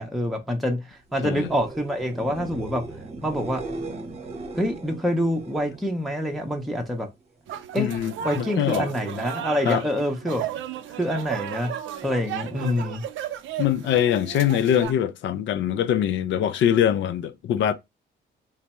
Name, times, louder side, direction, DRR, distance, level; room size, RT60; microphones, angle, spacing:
voice 1, 0.0-2.8 3.2-3.6 4.5-7.1 7.7-7.9 8.2-10.4 10.9-11.7 12.0-13.0, equal, ahead, 0.6 m, -26 dB
sound 1, 1.1-6.9 7.2-7.8 14.8-14.9, right 2 dB, 30° right, 0.8 m, -38 dB
sound 2, 7.5-14.9, right 10 dB, 75° right, 0.5 m, -34 dB
voice 2, 7.8-8.9 9.7-9.8 12.6-12.9 13.6-17.7, left 10 dB, 70° left, 0.5 m, -23 dB
3.3 x 2.0 x 4.2 m
cardioid pair, 90°, 20 cm